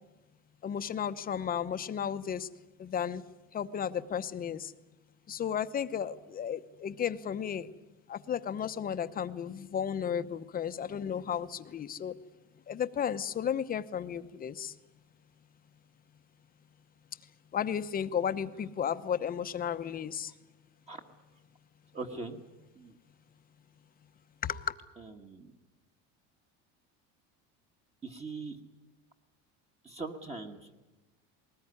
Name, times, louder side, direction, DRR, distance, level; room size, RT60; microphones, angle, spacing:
voice 1, 0.6-2.5 2.8-3.2 3.5-4.7 5.3-7.7 8.1-12.2 12.7-14.7 17.5-20.3 24.4-24.8, left 8 dB, 25° left, 11 dB, 0.8 m, -34 dB
voice 2, 21.9-22.4 22.7-22.9 25.0-25.5 28.0-28.6 29.8-30.8, right 3 dB, 20° right, 3 dB, 1.5 m, -41 dB
20.5 x 19.5 x 9.7 m, 1.1 s
cardioid pair, 145°, 33 cm